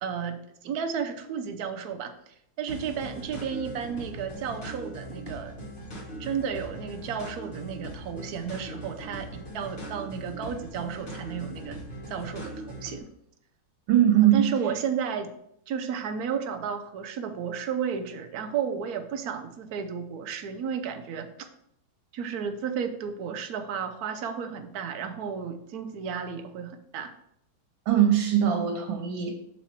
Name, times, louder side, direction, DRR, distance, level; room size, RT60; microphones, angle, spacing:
voice 1, 0.0-5.5 6.2-11.8 12.1-13.1 14.2-15.3 15.7-21.5 22.1-27.1, right 7 dB, 70° right, 7 dB, 0.9 m, -33 dB
sound 1, 2.7-13.0, right 1 dB, 35° left, 1.1 m, -40 dB
voice 2, 13.9-14.5 27.9-29.3, right 10 dB, 85° right, 2 dB, 1.6 m, -21 dB
6.4 x 4.2 x 4.4 m, 0.74 s
omnidirectional pair, 2.1 m